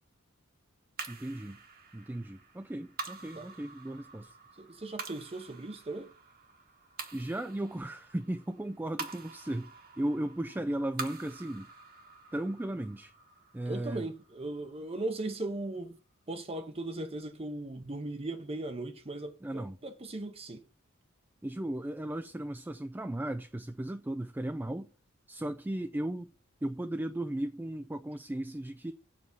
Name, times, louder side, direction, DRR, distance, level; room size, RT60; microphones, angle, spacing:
sound 1, 1.0-15.5, right 4 dB, 45° right, 1.2 m, -47 dB
voice 1, 1.1-1.6 1.9-4.4 7.1-11.7 12.3-13.1 13.5-14.1 19.4-19.8 21.4-24.9 25.3-26.3 26.6-28.9, right 1 dB, 10° right, 0.3 m, -36 dB
voice 2, 4.6-6.1 13.7-16.0 16.3-20.6, right 2 dB, 30° right, 0.7 m, -38 dB
7.4 x 4.7 x 6.9 m
head